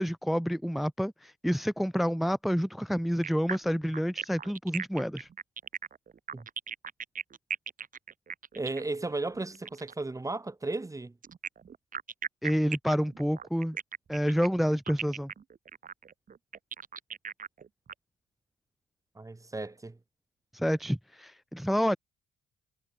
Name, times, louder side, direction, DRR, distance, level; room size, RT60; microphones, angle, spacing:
voice 1, 0.0-5.3 12.4-13.8 14.1-15.3 20.5-22.0, equal, ahead, 0.5 m, -28 dB
sound 1, 3.2-10.0 11.2-17.9, right 6 dB, 45° right, 2.2 m, -38 dB
voice 2, 8.5-11.1 19.2-20.0, right 2 dB, 15° right, 1.9 m, -35 dB
cardioid pair, 90°, 20 cm